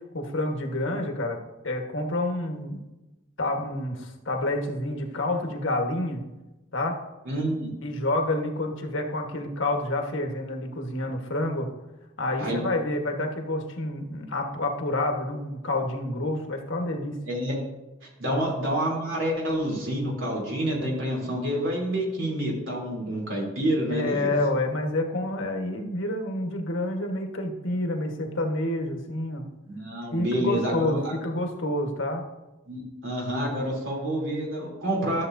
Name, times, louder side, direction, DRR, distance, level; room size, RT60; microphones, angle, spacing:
voice 1, 0.1-1.4 1.6-2.8 3.4-6.2 6.7-7.0 7.8-11.7 12.2-17.2 18.3-18.5 23.9-29.5 30.1-32.2, left 1 dB, 85° left, 3 dB, 1.3 m, -28 dB
voice 2, 7.2-7.7 12.4-12.6 17.3-17.6 18.2-24.3 29.7-31.1 32.7-35.3, right 1 dB, 90° right, -2 dB, 3.1 m, -28 dB
13.0 x 7.3 x 2.6 m, 1.0 s
head